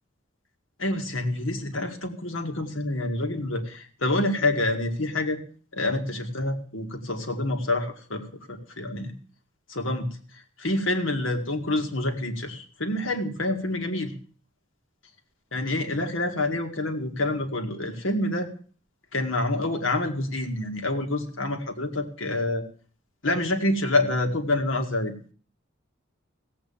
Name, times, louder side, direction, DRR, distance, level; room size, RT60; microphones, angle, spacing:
voice 1, 0.8-5.4 5.7-9.1 9.7-14.1 15.5-18.5 19.1-22.6 23.2-25.1, left 2 dB, 80° left, 6 dB, 2.1 m, -27 dB
17.0 x 8.3 x 7.1 m, 0.42 s
head